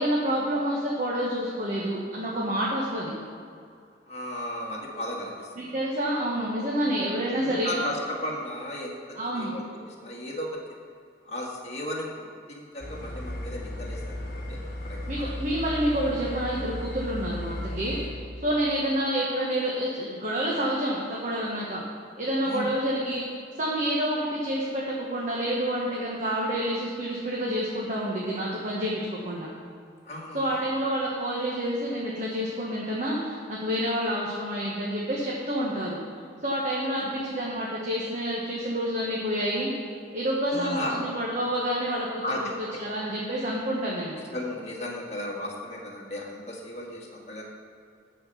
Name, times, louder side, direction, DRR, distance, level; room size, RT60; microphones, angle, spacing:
voice 1, 0.0-3.1 5.6-7.7 9.2-9.5 15.1-21.8 22.2-23.2 23.6-29.5 30.3-36.0 36.4-39.7 40.1-42.2 42.6-44.2, equal, 40° right, -5 dB, 1.2 m, -28 dB
voice 2, 4.1-5.7 7.2-10.5 11.2-14.6 14.8-15.3 22.4-22.7 30.0-30.6 37.0-37.1 40.5-41.0 42.2-42.4 44.3-47.4, left 1 dB, 35° left, -2 dB, 1.6 m, -35 dB
sound 1, 12.8-18.1, left 1 dB, 55° left, 1.4 m, -35 dB
13.0 x 4.5 x 5.6 m, 2.4 s
head